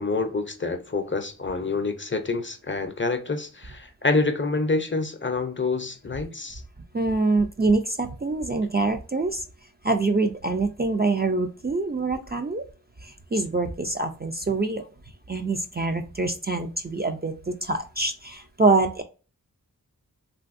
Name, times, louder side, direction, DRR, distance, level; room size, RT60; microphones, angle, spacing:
voice 1, 0.0-6.6, left 3 dB, 35° left, 0.5 m, -27 dB
voice 2, 6.9-9.5 9.8-12.6 13.0-14.9 15.3-19.0, right 3 dB, 30° right, 0.4 m, -25 dB
3.4 x 2.6 x 2.4 m
wide cardioid pair, 50°, 36 cm